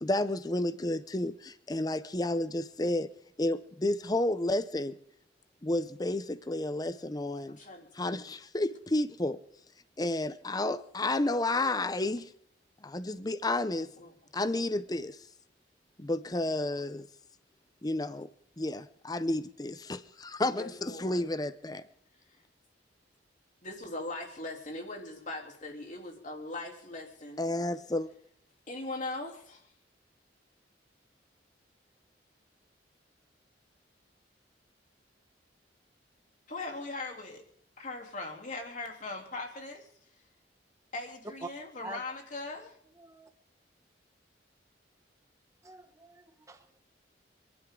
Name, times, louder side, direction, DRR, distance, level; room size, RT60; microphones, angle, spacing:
voice 1, 0.0-3.1 3.4-5.0 5.6-7.6 8.0-9.4 10.0-12.3 12.8-13.9 14.3-15.2 16.0-17.1 17.8-18.3 18.6-21.8 27.4-28.1, left 2 dB, 20° left, 0.7 m, -31 dB
voice 2, 7.5-8.3 13.8-14.1 20.5-21.3 23.6-27.4 28.7-29.7 36.5-37.4 37.8-39.9 40.9-42.8, left 2 dB, 45° left, 3.3 m, -40 dB
voice 3, 42.9-43.3 45.6-46.8, right 2 dB, 15° right, 1.3 m, -45 dB
29.0 x 11.5 x 3.8 m
head